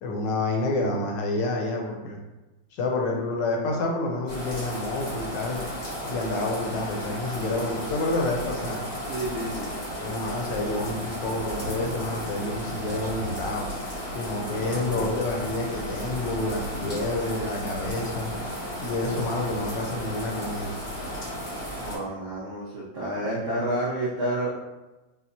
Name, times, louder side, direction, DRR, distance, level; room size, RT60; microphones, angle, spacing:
voice 1, 0.0-2.2 2.7-5.6 6.0-8.8 10.0-13.7 14.1-18.3 18.8-20.7, left 2 dB, 75° left, 0 dB, 1.2 m, -28 dB
sound 1, 4.3-22.0, equal, 45° left, 0.8 m, -34 dB
voice 2, 9.1-9.7 14.5-15.1 21.8-24.5, right 1 dB, 90° right, -6 dB, 0.6 m, -30 dB
4.2 x 2.1 x 2.6 m, 1.1 s
omnidirectional pair, 2.1 m